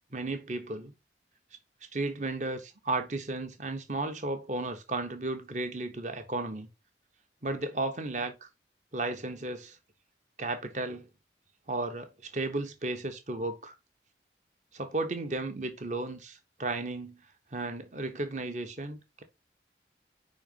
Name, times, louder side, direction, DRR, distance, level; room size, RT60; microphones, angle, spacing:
voice 1, 0.1-0.9 1.9-6.7 7.4-8.3 8.9-9.8 10.4-11.1 11.7-13.7 14.7-17.2 17.5-19.2, right 2 dB, 45° right, 1.2 m, -34 dB
5.1 x 4.4 x 5.5 m
head